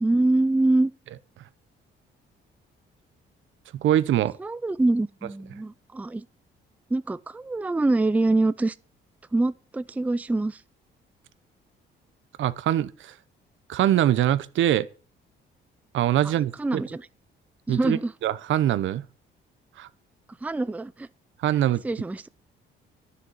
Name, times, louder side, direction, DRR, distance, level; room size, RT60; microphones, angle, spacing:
voice 1, 0.0-0.9 4.4-6.3 6.9-8.8 9.3-10.6 16.6-17.0 17.7-18.1 20.4-21.1 21.8-22.2, right 2 dB, 5° right, 0.4 m, -24 dB
voice 2, 3.8-4.4 12.4-13.1 13.7-14.9 15.9-16.8 17.7-19.0 19.8-19.9 21.4-21.8, right 12 dB, 75° right, 0.8 m, -23 dB
10.0 x 7.0 x 6.4 m
cardioid pair, 90°, 20 cm